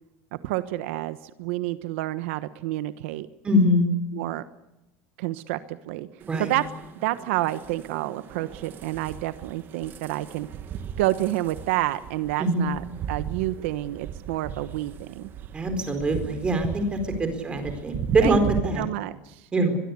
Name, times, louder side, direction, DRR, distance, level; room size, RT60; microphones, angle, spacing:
voice 1, 0.4-3.3 4.1-4.4 5.2-6.1 6.4-6.7 7.0-10.5 11.0-15.3 18.2-18.4 18.8-19.5, right 16 dB, 75° right, 13 dB, 1.2 m, -29 dB
voice 2, 3.4-3.9 6.3-6.5 12.4-12.7 15.5-18.8 19.5-19.8, right 1 dB, 15° right, 7 dB, 4.5 m, -23 dB
sound 1, 6.2-18.6, right 8 dB, 30° right, 1.5 m, -36 dB
22.5 x 22.5 x 8.4 m, 0.95 s
cardioid pair, 175°, 7 cm